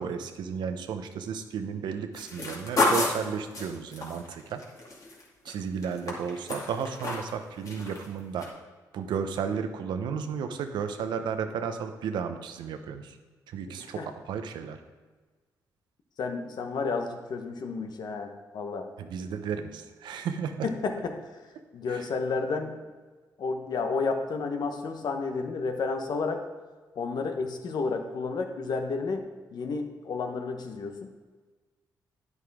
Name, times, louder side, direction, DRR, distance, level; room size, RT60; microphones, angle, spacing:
voice 1, 0.0-4.6 5.4-8.5 8.9-13.2 13.5-14.8 19.0-20.7 21.9-22.1, right 6 dB, 85° right, 7 dB, 0.8 m, -33 dB
sound 1, 2.1-5.5 5.8-7.4 7.7-8.1 8.4-8.5, left 2 dB, 50° left, 2.5 m, -30 dB
voice 2, 16.2-18.9 20.6-21.2 21.7-22.8 23.4-26.4 26.9-29.2 29.5-31.1, left 4 dB, 65° left, 5 dB, 1.1 m, -31 dB
9.8 x 8.1 x 3.6 m, 1.4 s
cardioid pair, 70°, 8 cm